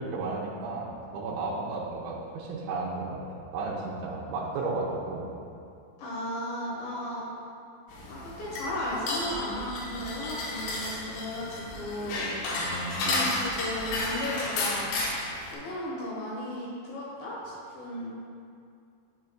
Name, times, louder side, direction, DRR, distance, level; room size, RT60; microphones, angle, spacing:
voice 1, 0.0-3.2 3.5-5.3 12.6-13.2, right 3 dB, 80° right, -5 dB, 3.0 m, -33 dB
voice 2, 6.0-7.2 8.1-12.3 13.0-14.9 15.5-18.1, left 1 dB, 65° left, -7 dB, 2.5 m, -35 dB
sound 1, 7.9-15.6, left 2 dB, 80° left, 3.7 m, -32 dB
9.6 x 7.7 x 2.4 m, 2.4 s
omnidirectional pair, 5.6 m